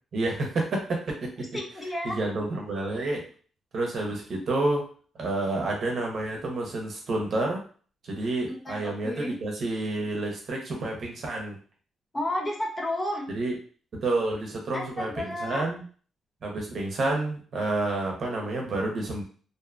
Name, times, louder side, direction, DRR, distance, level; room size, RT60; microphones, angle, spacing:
voice 1, 0.1-1.5 2.0-3.3 3.7-4.9 5.2-7.6 8.0-11.6 13.3-13.5 13.9-15.8 16.4-19.2, right 2 dB, 50° right, 0 dB, 0.8 m, -29 dB
voice 2, 1.5-2.2 4.3-4.4 8.5-9.4 12.1-13.3 14.7-15.7, left 1 dB, 15° left, 0 dB, 0.5 m, -32 dB
2.6 x 2.3 x 2.3 m, 0.42 s
cardioid pair, 125°, 0 cm